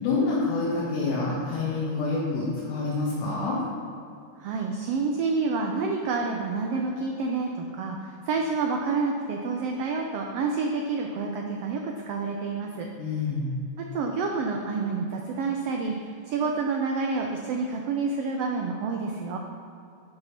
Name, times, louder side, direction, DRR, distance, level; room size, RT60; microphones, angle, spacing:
voice 1, 0.0-3.6 13.0-13.5, left 3 dB, 80° left, -6 dB, 3.0 m, -27 dB
voice 2, 4.4-12.9 13.8-19.4, right 4 dB, 80° right, 2 dB, 1.4 m, -28 dB
10.5 x 5.7 x 5.8 m, 2.5 s
omnidirectional pair, 3.6 m